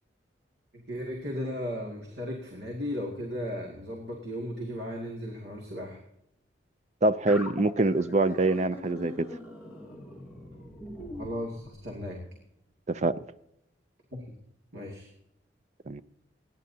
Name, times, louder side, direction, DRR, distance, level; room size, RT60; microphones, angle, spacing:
voice 1, 0.7-6.0 11.1-12.2 14.1-14.2 14.7-15.1, equal, 60° right, 2.4 m, -36 dB
voice 2, 7.0-9.3 12.9-13.2 15.9-16.0, right 2 dB, 35° right, 0.5 m, -25 dB
sound 1, 7.3-12.2, left 1 dB, 10° right, 2.6 m, -43 dB
29.0 x 10.5 x 2.8 m
head